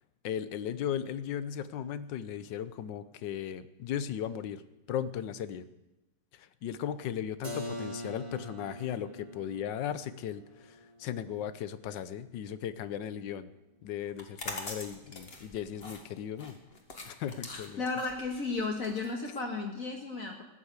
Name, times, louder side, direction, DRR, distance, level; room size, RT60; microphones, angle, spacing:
voice 1, 0.2-4.6 4.9-5.6 6.3-13.5 13.8-16.6 17.0-17.8, left 9 dB, 85° left, 14 dB, 1.5 m, -37 dB
Keyboard (musical), 7.4-13.0, equal, 20° right, 1.3 m, -45 dB
sound 1, 14.1-19.8, left 2 dB, 35° left, 2.1 m, -44 dB
voice 2, 17.8-20.4, left 3 dB, 50° left, 1 dB, 1.8 m, -34 dB
15.0 x 9.9 x 8.1 m, 1.0 s
omnidirectional pair, 1.9 m